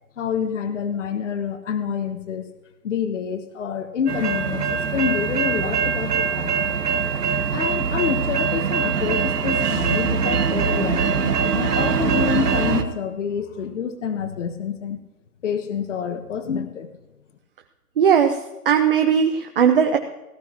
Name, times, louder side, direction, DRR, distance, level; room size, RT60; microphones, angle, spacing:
voice 1, 0.2-2.5 2.8-6.8 7.5-15.0 15.4-16.9, left 7 dB, 50° left, 8 dB, 1.4 m, -27 dB
sound 1, 4.1-12.8, right 6 dB, 80° right, 1.6 m, -22 dB
voice 2, 18.0-20.0, right 7 dB, 35° right, 5 dB, 0.8 m, -18 dB
18.0 x 12.5 x 3.0 m, 1.0 s
hypercardioid pair, 165°, 47 cm